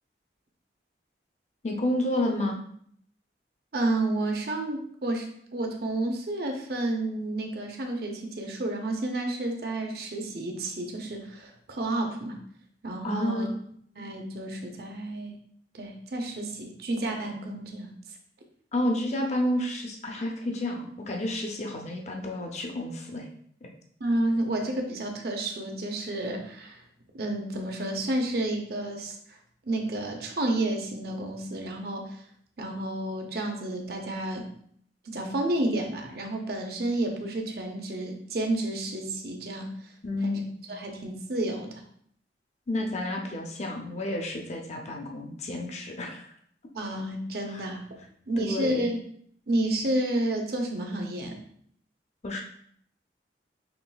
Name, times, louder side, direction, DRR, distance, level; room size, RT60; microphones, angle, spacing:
voice 1, 1.6-2.6 13.0-13.5 18.7-23.2 40.0-40.8 42.7-46.3 47.5-47.7 48.4-48.9 52.2-52.4, left 1 dB, 40° left, 2 dB, 0.6 m, -30 dB
voice 2, 3.7-5.3 5.5-12.4 12.8-13.5 14.0-15.4 15.7-17.9 24.0-26.8 27.1-29.1 29.7-32.2 32.6-34.5 35.1-39.7 40.2-40.4 40.7-41.8 46.7-47.8 48.3-49.0 49.5-51.4, right 1 dB, 60° right, 3 dB, 0.7 m, -30 dB
5.8 x 3.1 x 2.3 m, 0.65 s
head